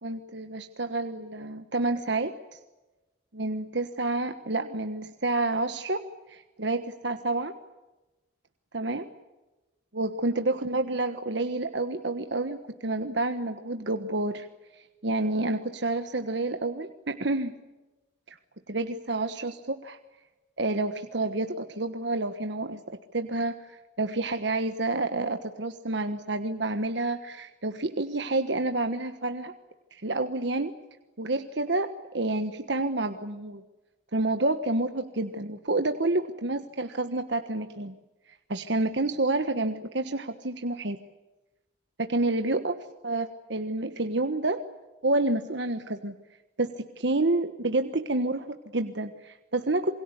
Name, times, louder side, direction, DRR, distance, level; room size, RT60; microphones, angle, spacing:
voice 1, 0.0-2.6 3.3-6.0 6.3-7.5 8.7-9.1 9.9-14.5 14.7-17.6 18.3-18.4 18.7-20.0 20.6-22.8 23.1-29.5 29.9-30.7 31.2-33.6 34.1-37.9 38.5-41.0 42.0-42.7 43.0-43.2 43.5-44.6 45.0-46.1 46.6-50.0, right 2 dB, 65° right, 7 dB, 1.4 m, -29 dB
28.0 x 23.0 x 8.4 m, 1.1 s
head